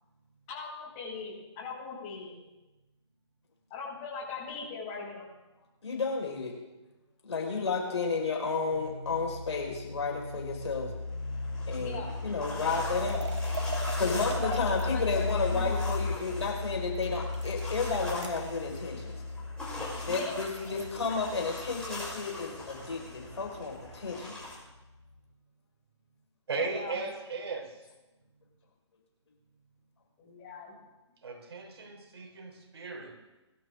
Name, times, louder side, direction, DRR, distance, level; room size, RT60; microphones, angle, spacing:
voice 1, 0.5-2.4 3.7-5.3 11.7-12.2 14.0-15.7 20.0-20.3 26.6-27.0 30.2-30.7, left 4 dB, 25° left, -4 dB, 6.9 m, -40 dB
voice 2, 5.8-6.5 7.2-10.9 11.7-13.3 13.9-19.2 20.1-24.4, left 4 dB, 65° left, 1 dB, 5.0 m, -32 dB
sound 1, 8.7-24.1, left 3 dB, 85° left, 1.3 m, -36 dB
sound 2, 10.9-24.5, left 2 dB, 5° left, 6.8 m, -43 dB
sound 3, 13.0-15.1 16.9-18.5 20.1-21.2, right 3 dB, 75° right, 1.7 m, -41 dB
voice 3, 26.5-27.8 31.2-33.2, right 3 dB, 55° right, 2 dB, 3.7 m, -36 dB
22.5 x 13.0 x 3.8 m, 1.1 s
figure-of-eight pair, 140°, 15 cm